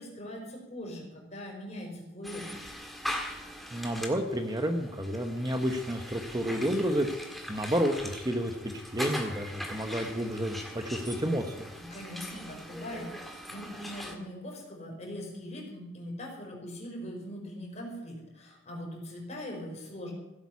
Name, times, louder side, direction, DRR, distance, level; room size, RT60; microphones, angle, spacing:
voice 1, 0.0-2.4 11.8-20.1, equal, 35° left, 0 dB, 4.9 m, -41 dB
sound 1, 2.2-14.2, equal, ahead, 1.8 m, -41 dB
voice 2, 3.7-7.1 7.5-11.7, equal, 20° right, 5 dB, 1.0 m, -30 dB
16.0 x 8.8 x 8.5 m, 1.0 s
head